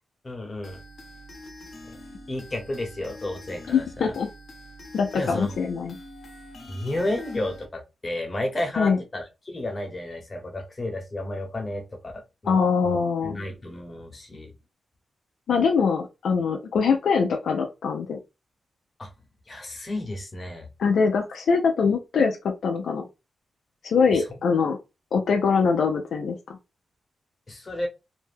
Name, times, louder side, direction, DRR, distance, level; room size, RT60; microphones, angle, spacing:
voice 1, 0.2-0.8 2.3-4.1 5.1-5.6 6.7-11.8 12.1-13.0 13.2-14.5 19.0-19.1 19.5-20.7 24.1-24.2 27.5-27.9, left 1 dB, 35° left, 3 dB, 1.0 m, -32 dB
sound 1, 0.6-7.7, left 1 dB, 60° left, 0.8 m, -45 dB
voice 2, 3.7-4.3 4.9-6.0 8.8-9.0 12.5-13.4 15.5-18.2 20.8-22.4 22.6-23.1 23.8-24.8 25.1-26.6, left 5 dB, 80° left, 3 dB, 0.4 m, -23 dB
2.6 x 2.1 x 3.4 m, 0.26 s
cardioid pair, 75°, 0 cm